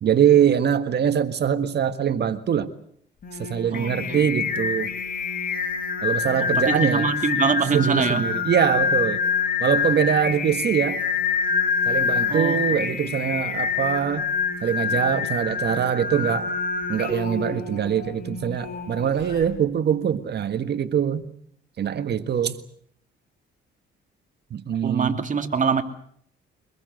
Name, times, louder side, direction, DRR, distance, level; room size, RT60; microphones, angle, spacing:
voice 1, 0.0-2.7 3.4-4.9 6.0-7.1 7.7-9.2 9.6-11.0 11.9-14.3 14.6-16.5 16.9-21.3 21.8-22.6 24.5-25.2, right 8 dB, 55° right, 1.6 m, -23 dB
Singing, 3.2-19.5, left 6 dB, 45° left, 4.4 m, -26 dB
voice 2, 3.7-4.2 6.4-8.2 12.3-12.6 24.8-25.8, right 5 dB, 40° right, 2.6 m, -24 dB
25.0 x 21.0 x 7.9 m
cardioid pair, 90°, 20 cm